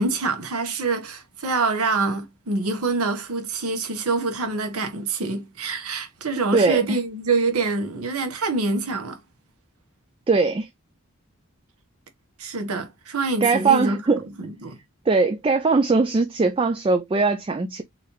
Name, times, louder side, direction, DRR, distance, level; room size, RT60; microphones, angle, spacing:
voice 1, 0.0-9.2 12.4-14.8, right 3 dB, 85° right, 1.2 m, -26 dB
voice 2, 6.5-7.0 10.3-10.7 13.4-14.2 15.1-17.8, right 4 dB, 25° right, 0.3 m, -20 dB
3.9 x 3.2 x 3.0 m
head